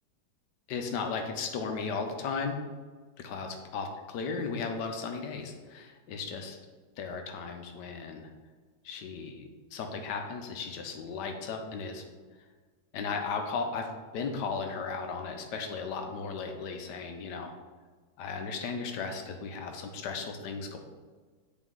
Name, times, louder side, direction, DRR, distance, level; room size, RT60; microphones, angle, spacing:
voice 1, 0.7-2.6 3.2-6.6 7.0-8.3 8.8-12.1 12.9-17.6 18.2-20.8, left 5 dB, 70° left, 4 dB, 1.3 m, -36 dB
8.2 x 4.1 x 3.8 m, 1.4 s
omnidirectional pair, 2.1 m